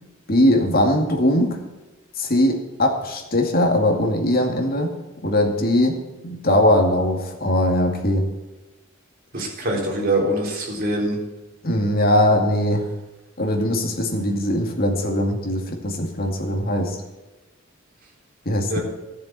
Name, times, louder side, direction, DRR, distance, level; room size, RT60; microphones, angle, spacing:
voice 1, 0.3-1.6 2.2-4.9 5.2-6.0 6.2-8.3 11.6-12.8 13.4-17.0 18.5-18.8, left 1 dB, 45° left, 2 dB, 2.3 m, -20 dB
voice 2, 9.3-11.2 18.7-18.8, right 1 dB, 45° right, -1 dB, 4.0 m, -23 dB
13.5 x 7.3 x 7.5 m, 1.1 s
head